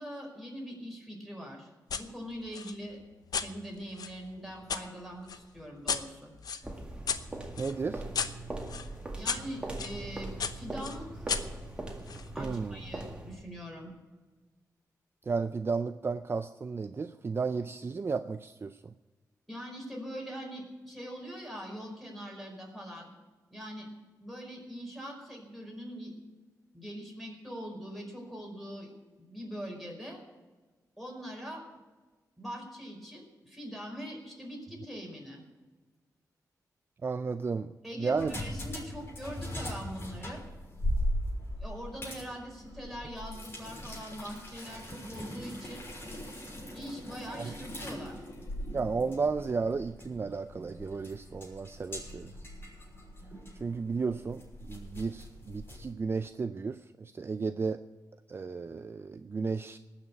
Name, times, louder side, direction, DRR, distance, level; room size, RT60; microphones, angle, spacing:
voice 1, 0.0-1.7 2.0-3.0 3.3-6.3 9.1-11.3 12.3-13.9 19.5-23.1 23.5-23.9 24.2-26.1 26.7-28.9 29.2-30.2 31.0-31.8 32.4-35.4 37.8-40.4 41.6-45.8 46.3-46.5 46.7-48.2, equal, ahead, -1 dB, 5.0 m, -42 dB
sound 1, 1.9-2.1 2.5-4.8 5.3-10.0 10.4-12.3, left 6 dB, 75° left, 0.8 m, -36 dB
sound 2, 6.6-13.5, right 2 dB, 15° right, 2.0 m, -41 dB
voice 2, 7.6-8.0 12.4-12.8 15.3-18.9 37.0-37.7 38.0-38.4 47.3-47.5 48.7-52.3 53.6-57.8 58.3-59.8, right 4 dB, 35° right, 11 dB, 0.4 m, -33 dB
sound 3, 38.1-55.9, equal, 35° left, 6.3 m, -39 dB
19.0 x 6.5 x 8.6 m, 1.3 s
wide cardioid pair, 95°, 7 cm